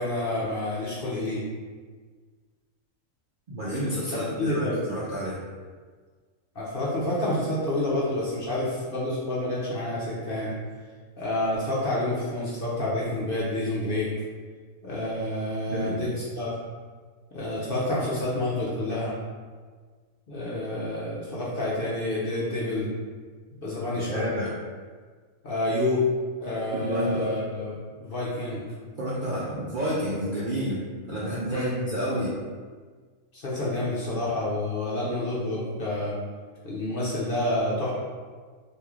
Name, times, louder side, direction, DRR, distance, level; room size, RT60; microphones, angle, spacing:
voice 1, 0.0-1.4 4.1-4.8 6.5-10.6 11.2-14.1 14.8-16.5 17.3-19.1 20.3-22.9 23.5-24.3 25.4-26.0 26.4-28.6 31.5-31.7 33.3-36.2 36.6-37.9, left 1 dB, 50° left, -7 dB, 0.7 m, -28 dB
voice 2, 3.5-5.4 15.7-16.0 24.1-24.5 26.7-27.4 29.0-30.8 31.1-32.4, equal, 55° right, -8 dB, 0.5 m, -29 dB
3.0 x 2.6 x 3.6 m, 1.5 s
omnidirectional pair, 1.5 m